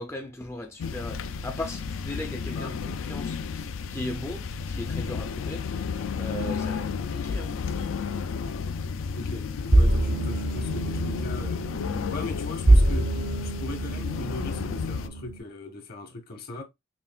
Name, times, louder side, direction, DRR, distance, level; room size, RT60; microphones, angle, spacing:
voice 1, 0.0-5.7 6.2-7.5, left 1 dB, 15° left, 0.4 m, -37 dB
sound 1, 0.8-15.1, left 5 dB, 90° left, 0.4 m, -32 dB
voice 2, 9.1-11.6 12.1-13.1 13.4-16.6, left 2 dB, 50° left, 1.0 m, -39 dB
sound 2, 9.7-15.4, right 1 dB, 80° right, 0.9 m, -25 dB
5.6 x 2.4 x 2.2 m
head